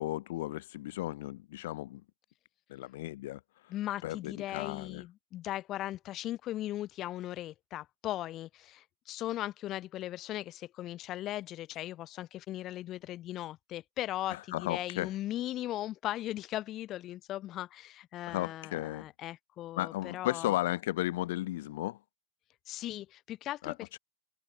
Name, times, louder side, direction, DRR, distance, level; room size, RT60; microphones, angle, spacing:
voice 1, 0.0-2.0 2.7-3.4 4.0-5.0 14.3-15.1 18.3-19.1 19.8-22.0 23.6-24.0, left 16 dB, 60° left, 6.3 m, -34 dB
voice 2, 3.7-20.5 22.7-24.0, left 14 dB, 30° left, 6.5 m, -38 dB
supercardioid pair, 155°, 0 cm